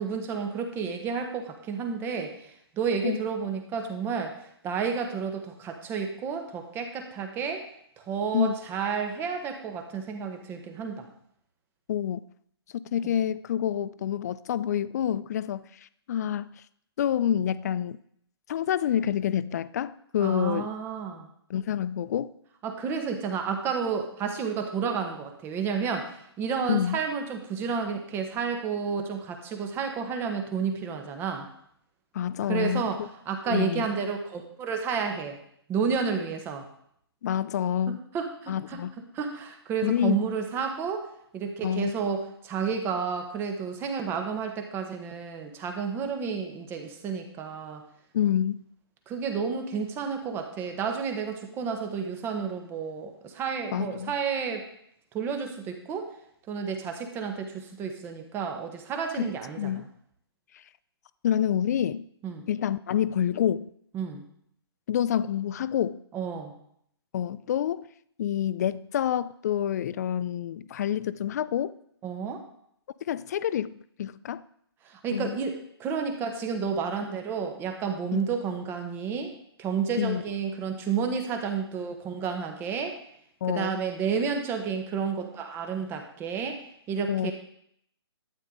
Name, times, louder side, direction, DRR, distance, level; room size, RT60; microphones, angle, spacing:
voice 1, 0.0-2.3 2.8-4.3 4.6-7.6 8.1-11.1 20.2-21.3 22.6-31.5 32.5-33.0 33.3-35.4 35.7-36.7 38.1-38.8 39.1-41.0 41.3-47.8 49.1-54.6 55.1-56.1 56.5-59.8 62.2-62.4 63.9-64.2 66.1-66.5 72.0-72.4 74.9-79.3 79.6-83.0 83.5-86.6 86.9-87.3, right 6 dB, 15° right, 1.3 m, -31 dB
voice 2, 11.9-12.2 12.9-15.7 16.1-16.5 17.0-18.0 18.5-20.7 21.5-22.3 26.7-27.0 32.1-33.1 33.5-33.9 37.2-38.1 38.5-38.9 39.8-40.3 41.6-41.9 48.1-48.6 53.7-54.1 59.2-59.8 61.2-62.1 62.5-63.7 64.9-66.0 67.1-67.9 68.2-71.7 73.1-74.4 75.1-75.4 78.1-78.2 80.0-80.2 83.4-83.8 87.1-87.3, left 10 dB, 40° left, 0.4 m, -27 dB
12.0 x 9.2 x 3.8 m
figure-of-eight pair, 140°, 14 cm